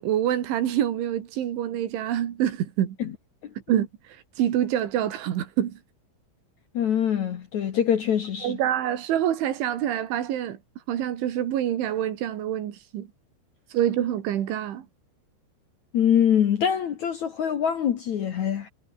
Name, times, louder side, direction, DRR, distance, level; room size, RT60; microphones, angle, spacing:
voice 1, 0.0-3.0 3.7-3.9 4.4-5.8 8.4-10.6 10.9-13.1 13.7-14.9, right 11 dB, 90° right, 4.8 m, -26 dB
voice 2, 6.7-8.6 15.9-18.7, left 9 dB, 60° left, 2.1 m, -24 dB
omnidirectional pair, 5.3 m